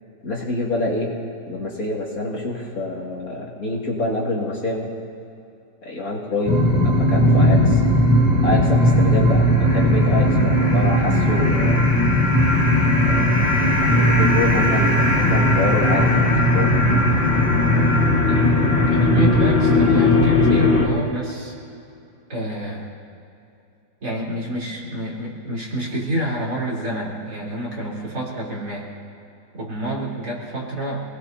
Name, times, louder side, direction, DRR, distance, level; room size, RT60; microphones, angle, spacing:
voice 1, 0.2-1.1 1.5-4.9 5.8-7.8 8.4-11.8 13.1-16.7 18.3-18.6, left 1 dB, 50° left, -3 dB, 2.6 m, -26 dB
sound 1, 6.5-20.9, left 1 dB, 30° left, 2.2 m, -17 dB
voice 2, 18.8-21.5 22.3-22.9 24.0-28.9 29.5-31.0, right 1 dB, 60° right, -5 dB, 4.1 m, -28 dB
28.0 x 19.0 x 2.7 m, 2.6 s
omnidirectional pair, 2.0 m